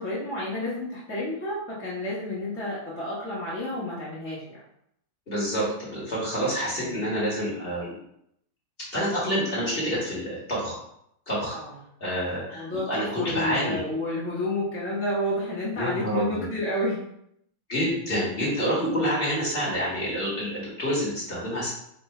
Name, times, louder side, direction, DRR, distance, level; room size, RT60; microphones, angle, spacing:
voice 1, 0.0-4.6 6.8-6.9 11.5-11.7 12.5-17.0, left 1 dB, 10° left, -8 dB, 0.6 m, -30 dB
voice 2, 5.3-7.9 8.9-10.8 11.3-11.6 12.0-13.8 15.8-16.4 17.7-21.7, equal, 30° left, -7 dB, 1.4 m, -28 dB
3.5 x 2.6 x 4.3 m, 0.74 s
omnidirectional pair, 2.3 m